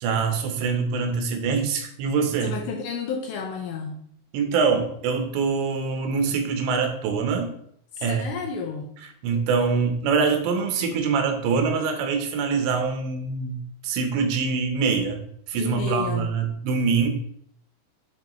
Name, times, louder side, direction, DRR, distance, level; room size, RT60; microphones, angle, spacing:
voice 1, 0.0-2.6 4.3-7.5 8.0-8.2 9.2-15.2 15.5-17.1, right 5 dB, 90° right, 5 dB, 3.3 m, -24 dB
voice 2, 2.4-4.1 7.9-8.9 15.5-16.3, left 6 dB, 80° left, 1 dB, 2.3 m, -31 dB
9.5 x 4.6 x 3.1 m, 0.67 s
omnidirectional pair, 4.9 m